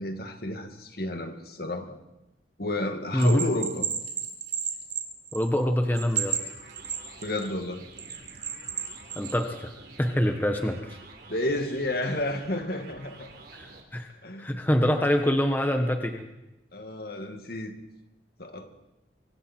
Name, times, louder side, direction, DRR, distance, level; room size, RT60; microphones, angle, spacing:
voice 1, 0.0-2.0 2.6-3.9 7.2-7.9 11.3-13.3 14.2-14.7 16.7-17.8 18.4-18.7, left 1 dB, 55° left, 5 dB, 2.3 m, -31 dB
Bell, 3.2-5.6 5.9-7.5 8.0-9.4, right 8 dB, 35° right, 2.7 m, -32 dB
voice 2, 5.3-6.4 9.2-9.7 10.0-11.0 13.5-14.1 14.4-16.3, equal, 10° left, 4 dB, 1.2 m, -25 dB
sound 1, 6.2-13.8, right 3 dB, 55° right, 4.0 m, -49 dB
26.0 x 24.0 x 4.5 m, 0.94 s
head